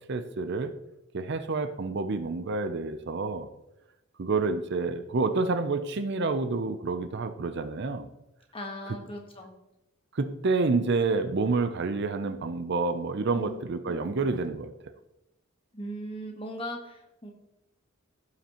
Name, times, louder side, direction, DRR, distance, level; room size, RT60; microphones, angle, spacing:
voice 1, 0.1-0.7 1.1-3.5 4.2-8.1 8.9-9.0 10.1-14.7, right 3 dB, 50° right, 9 dB, 0.5 m, -28 dB
voice 2, 8.5-9.5 13.3-14.1 15.7-17.3, equal, 25° left, 2 dB, 1.3 m, -39 dB
15.5 x 5.8 x 3.0 m, 0.92 s
head